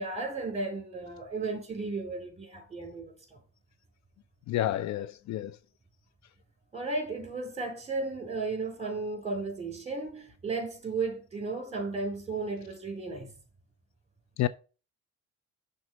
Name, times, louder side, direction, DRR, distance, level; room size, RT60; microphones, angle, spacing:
voice 1, 0.0-3.4 6.7-13.4, right 3 dB, 20° right, 3.4 m, -34 dB
voice 2, 4.5-5.5 14.4-14.5, left 13 dB, 60° left, 0.4 m, -29 dB
6.1 x 3.9 x 6.2 m
supercardioid pair, 75°, 33 cm